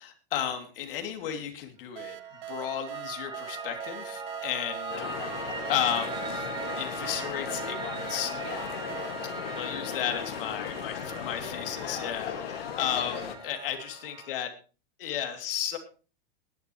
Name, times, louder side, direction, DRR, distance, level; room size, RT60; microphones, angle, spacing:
voice 1, 0.0-2.2 2.5-5.3 5.7-6.5 6.8-8.3 9.6-12.3 12.8-13.2 13.4-14.5 15.0-15.8, left 10 dB, 70° left, 6 dB, 3.0 m, -33 dB
Piano, 2.0-14.4, right 3 dB, 15° right, 1.3 m, -40 dB
sound 1, 2.0-10.4, right 15 dB, 60° right, 0.7 m, -43 dB
sound 2, 4.9-13.4, left 9 dB, 85° left, 2.1 m, -37 dB
voice 2, 8.4-9.1 11.8-13.5, left 6 dB, 40° left, 0 dB, 7.4 m, -42 dB
19.5 x 11.0 x 3.2 m, 0.35 s
supercardioid pair, 145°, 29 cm